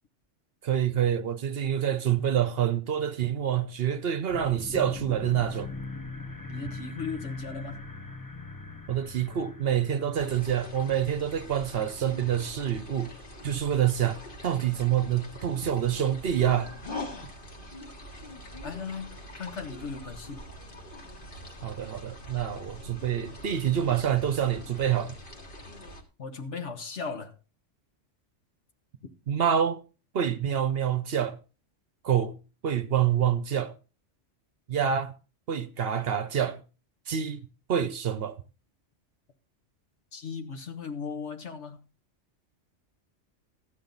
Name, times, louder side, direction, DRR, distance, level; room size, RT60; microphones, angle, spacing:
voice 1, 0.6-5.7 8.9-13.1 13.4-16.7 21.6-25.1 29.3-29.8 30.1-31.4 32.0-32.3 32.6-33.7 34.7-35.1 35.5-36.6 37.1-38.4, right 9 dB, 60° right, 0.9 m, -27 dB
sound 1, 4.3-12.4, left 3 dB, 20° left, 0.7 m, -41 dB
voice 2, 6.5-7.9 18.6-20.4 26.2-27.4 29.0-29.1 40.1-41.8, left 5 dB, 70° left, 1.5 m, -37 dB
sound 2, 10.1-26.0, left 1 dB, 45° left, 1.8 m, -44 dB
13.5 x 8.8 x 4.0 m
omnidirectional pair, 1.2 m